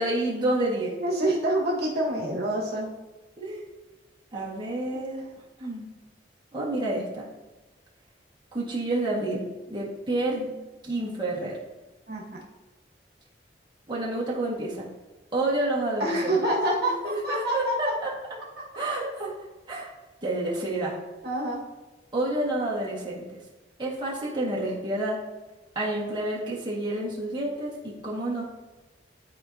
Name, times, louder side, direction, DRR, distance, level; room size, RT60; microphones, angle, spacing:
voice 1, 0.0-0.9 3.4-3.6 4.3-5.2 5.6-5.9 6.5-7.3 8.5-10.6 10.8-11.6 13.9-14.9 15.3-16.4 17.0-18.1 18.8-19.3 19.7-19.9 20.2-21.0 22.1-23.2 23.8-25.2 25.8-28.4, right 1 dB, 25° right, -5 dB, 1.8 m, -29 dB
voice 2, 1.0-2.9 4.9-5.0 12.1-12.4 16.0-17.9 21.2-21.6, right 1 dB, 65° right, -3 dB, 1.6 m, -27 dB
12.0 x 4.6 x 2.8 m, 1.2 s
head